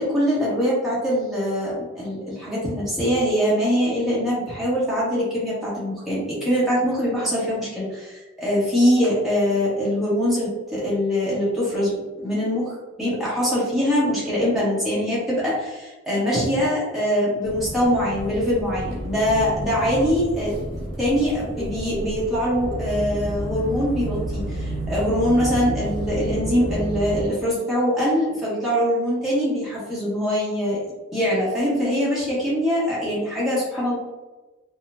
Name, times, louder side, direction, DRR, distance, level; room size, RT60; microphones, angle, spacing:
voice 1, 0.0-20.5 21.0-30.8 31.1-34.0, equal, ahead, -9 dB, 1.3 m, -23 dB
sound 1, 17.4-27.3, right 1 dB, 60° right, 0.8 m, -31 dB
4.1 x 2.2 x 2.5 m, 1.1 s
head